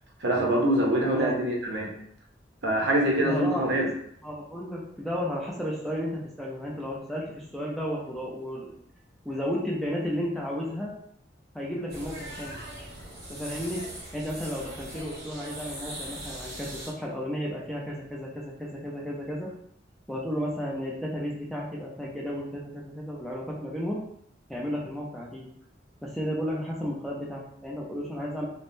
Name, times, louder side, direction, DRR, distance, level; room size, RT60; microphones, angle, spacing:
voice 1, 0.2-1.9 2.6-3.9, right 1 dB, 70° right, -1 dB, 0.7 m, -24 dB
voice 2, 3.2-3.7 4.2-8.7 9.2-10.9 11.5-12.6 13.3-13.8 14.1-19.5 20.1-24.0 24.5-25.5 26.0-28.5, equal, ahead, -4 dB, 0.4 m, -33 dB
sound 1, 11.9-16.9, right 1 dB, 55° right, 1.2 m, -40 dB
3.4 x 2.0 x 2.6 m, 0.70 s
head